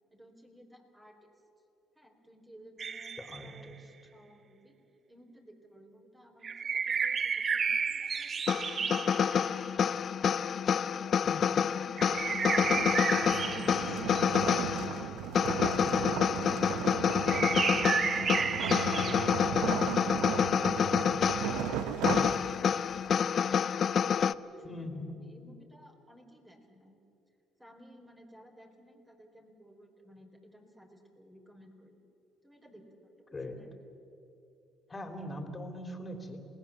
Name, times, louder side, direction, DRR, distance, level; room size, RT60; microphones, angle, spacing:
voice 1, 0.1-1.3 1.9-3.1 3.4-3.8 4.1-4.8 5.1-10.2 10.8-11.3 11.6-14.0 24.4-27.0 27.6-32.0 32.4-33.7, equal, 15° right, 2 dB, 4.3 m, -56 dB
sound 1, 2.8-3.6 6.4-9.5 12.0-14.2 17.1-19.3, right 6 dB, 40° right, 0.6 m, -32 dB
voice 2, 3.2-3.8 11.2-11.5 24.6-25.2 33.3-33.6 34.9-36.5, left 1 dB, 25° left, 5 dB, 3.5 m, -41 dB
sound 2, 8.5-24.3, left 7 dB, 50° left, 0.5 m, -28 dB
sound 3, 12.0-23.0, right 9 dB, 85° right, 0.9 m, -36 dB
27.0 x 19.0 x 7.4 m, 2.8 s
supercardioid pair, 80°, 0 cm